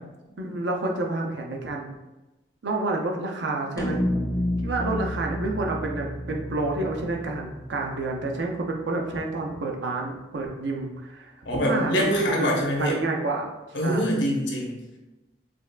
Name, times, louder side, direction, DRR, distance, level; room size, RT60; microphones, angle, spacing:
voice 1, 0.4-1.9 2.6-4.0 4.6-11.3 11.6-12.5 12.8-13.4 13.8-14.1, right 2 dB, 80° right, 1 dB, 0.6 m, -29 dB
sound 1, 3.8-8.3, left 1 dB, 20° left, 0.3 m, -30 dB
voice 2, 11.4-13.0 13.7-14.8, equal, 85° left, -1 dB, 0.9 m, -24 dB
5.0 x 2.4 x 2.2 m, 1.0 s
head